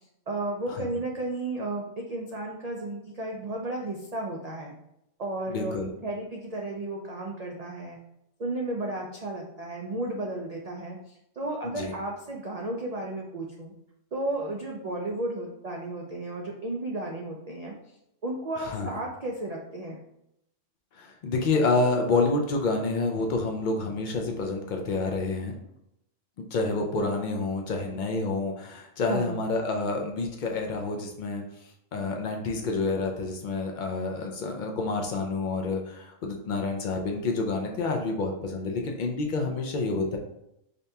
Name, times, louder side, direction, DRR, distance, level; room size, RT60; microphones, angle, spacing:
voice 1, 0.3-4.7 5.2-5.8 6.0-8.0 8.4-13.7 14.1-17.8 18.2-20.0 29.0-29.4, right 2 dB, 80° right, -1 dB, 0.3 m, -33 dB
voice 2, 5.5-5.9 11.7-11.9 18.6-19.0 20.9-25.6 26.4-31.4 31.9-40.2, left 3 dB, 70° left, 2 dB, 0.4 m, -28 dB
5.1 x 2.2 x 2.7 m, 0.82 s
omnidirectional pair, 1.3 m